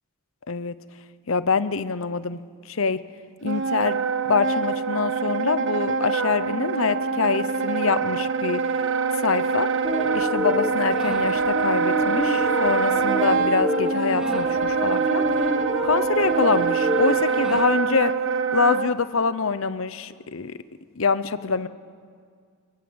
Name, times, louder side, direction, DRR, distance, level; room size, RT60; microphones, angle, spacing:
voice 1, 1.3-2.4 2.7-3.0 3.4-4.0 4.2-8.6 9.1-9.7 10.1-15.2 15.8-18.1 18.5-20.6 21.0-21.7, left 5 dB, 70° left, 14 dB, 0.8 m, -25 dB
Wind instrument woodwind instrument, 3.4-18.9, right 5 dB, 65° right, 1.1 m, -24 dB
sound 1, 9.8-17.6, equal, 5° right, 2.4 m, -28 dB
24.5 x 21.0 x 7.9 m, 2.1 s
head